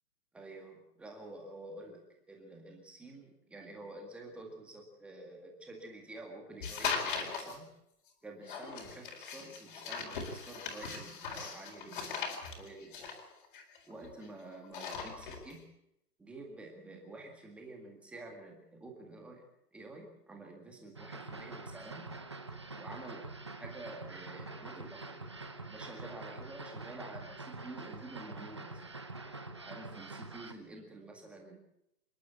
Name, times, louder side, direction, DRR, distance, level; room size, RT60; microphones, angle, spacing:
voice 1, 0.3-7.7 8.2-12.2 12.6-13.1 13.9-15.7 16.2-19.4 19.7-22.1 22.7-23.3 23.6-25.2 25.7-29.0 29.6-31.6, right 2 dB, ahead, 1 dB, 1.9 m, -49 dB
sound 1, 6.6-7.6 8.5-14.3 14.6-15.5, left 5 dB, 30° left, 4.3 m, -39 dB
sound 2, 20.9-30.5, right 3 dB, 15° right, 0.7 m, -45 dB
28.0 x 11.5 x 8.4 m, 0.80 s
hypercardioid pair, 165°, 49 cm